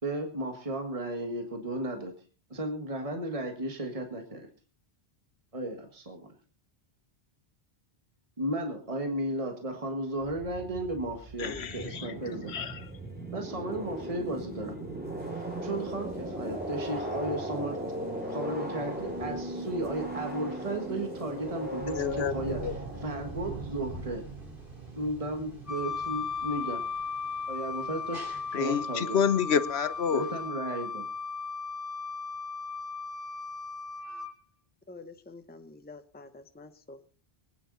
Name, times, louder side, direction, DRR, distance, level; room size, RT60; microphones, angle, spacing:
voice 1, 0.0-2.1 2.5-4.5 5.5-6.3 8.4-12.5 13.3-14.8 15.3-17.8 18.3-24.2 25.0-26.8 27.5-29.2 30.1-31.0, right 1 dB, 35° right, 3 dB, 1.8 m, -34 dB
sound 1, 10.2-23.6, right 1 dB, 10° right, 2.8 m, -38 dB
voice 2, 11.4-12.1 12.5-12.9 21.9-22.7 28.5-30.3, left 7 dB, 80° left, 13 dB, 1.2 m, -29 dB
sound 2, 15.2-30.5, right 3 dB, 55° right, 3.4 m, -45 dB
Wind instrument woodwind instrument, 25.7-34.3, left 5 dB, 30° left, 2.1 m, -36 dB
voice 3, 34.9-37.1, left 3 dB, 10° left, 8 dB, 0.9 m, -48 dB
23.5 x 9.6 x 4.1 m, 0.39 s
omnidirectional pair, 1.1 m